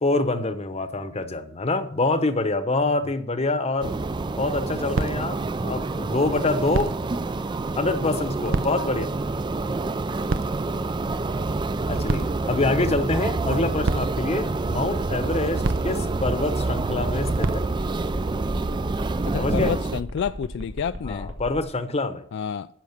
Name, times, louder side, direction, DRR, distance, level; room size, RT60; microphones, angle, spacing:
voice 1, 0.0-4.0 4.4-6.9 7.8-9.1 11.9-17.7 19.4-19.8 21.0-22.2, left 2 dB, 30° left, 0.9 m, -26 dB
sound 1, 3.7-18.2, right 3 dB, 70° right, 0.6 m, -34 dB
sound 2, 3.8-20.0, right 3 dB, 25° right, 0.4 m, -27 dB
sound 3, 16.2-21.6, equal, 85° right, 2.0 m, -36 dB
voice 2, 19.3-21.3 22.3-22.7, left 7 dB, 60° left, 0.3 m, -29 dB
10.5 x 6.2 x 8.0 m
head